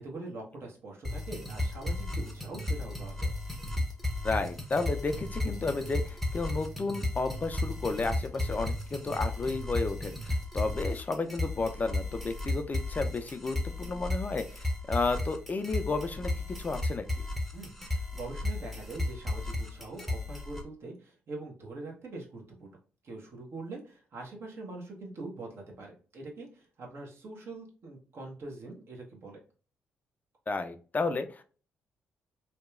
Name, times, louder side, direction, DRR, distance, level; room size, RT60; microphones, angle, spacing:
voice 1, 0.0-3.3 17.5-22.8 23.0-29.4, right 2 dB, 55° right, 0 dB, 0.9 m, -43 dB
sound 1, 1.0-20.6, left 2 dB, ahead, 0.7 m, -34 dB
voice 2, 4.2-17.1 30.5-31.4, left 3 dB, 30° left, 8 dB, 0.3 m, -32 dB
2.8 x 2.2 x 2.3 m, 0.37 s
hypercardioid pair, 45°, 5 cm